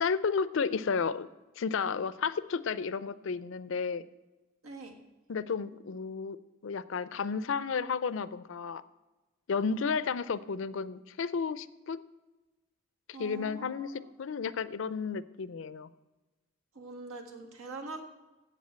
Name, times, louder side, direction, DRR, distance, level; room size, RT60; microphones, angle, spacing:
voice 1, 0.0-1.3 1.6-4.0 5.3-6.4 6.6-8.8 9.5-12.0 13.1-13.9 14.2-15.9, left 5 dB, 60° left, 17 dB, 0.4 m, -32 dB
voice 2, 4.6-4.9 13.1-14.1 16.7-18.0, right 3 dB, 85° right, 4 dB, 1.7 m, -43 dB
7.9 x 7.4 x 8.6 m, 1.1 s
head